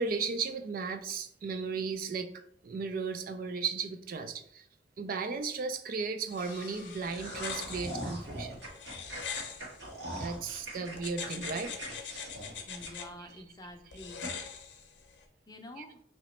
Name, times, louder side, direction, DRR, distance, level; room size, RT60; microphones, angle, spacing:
voice 1, 0.0-2.3 2.6-4.6 5.0-8.5 10.1-11.7 13.2-13.3 14.2-14.3 15.8-15.9, right 4 dB, 50° right, 9 dB, 0.3 m, -35 dB
sound 1, 6.3-10.4 11.0-13.1 13.9-15.2, left 7 dB, 80° left, 0.6 m, -43 dB
sound 2, 6.4-8.6, left 3 dB, 50° left, 0.8 m, -54 dB
sound 3, 7.0-13.3 13.7-13.8 14.2-14.4, right 1 dB, 75° right, 1.4 m, -41 dB
voice 2, 12.7-14.2 15.5-16.0, left 1 dB, 20° left, 4 dB, 0.5 m, -47 dB
3.0 x 3.0 x 4.2 m, 0.64 s
head